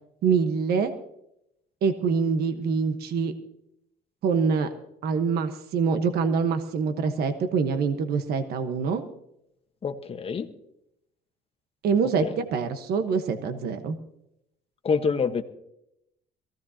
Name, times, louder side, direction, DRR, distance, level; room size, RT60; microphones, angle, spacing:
voice 1, 0.2-0.9 1.8-3.3 4.2-4.7 5.0-9.0 11.8-14.0, right 5 dB, 65° right, 8 dB, 1.2 m, -25 dB
voice 2, 9.8-10.5 12.2-12.4 14.8-15.4, left 5 dB, 35° left, 8 dB, 1.2 m, -26 dB
22.5 x 16.0 x 2.8 m, 0.80 s
cardioid pair, 110°, 17 cm